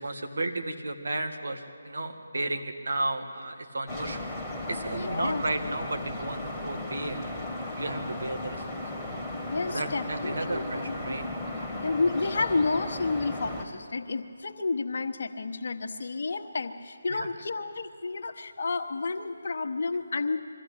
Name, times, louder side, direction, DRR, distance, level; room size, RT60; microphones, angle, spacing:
voice 1, 0.0-4.3 4.7-7.4 7.7-9.1 9.7-11.3 11.6-11.7 17.1-17.3, right 2 dB, 70° right, 5 dB, 2.0 m, -33 dB
sound 1, 3.9-13.6, left 1 dB, ahead, 2.2 m, -36 dB
voice 2, 4.9-5.4 9.4-10.6 11.8-20.4, left 3 dB, 55° left, 6 dB, 1.3 m, -30 dB
23.0 x 14.5 x 8.8 m, 2.3 s
figure-of-eight pair, 150°, 0 cm